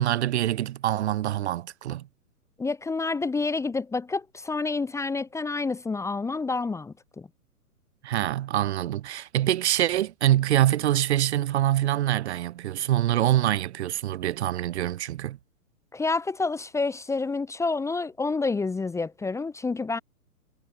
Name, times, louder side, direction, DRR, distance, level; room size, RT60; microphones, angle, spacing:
voice 1, 0.0-2.1 8.0-15.4, right 13 dB, 50° right, 2.2 m, -25 dB
voice 2, 2.6-7.3 15.9-20.0, left 3 dB, 5° left, 1.6 m, -28 dB
figure-of-eight pair, 120°, 43 cm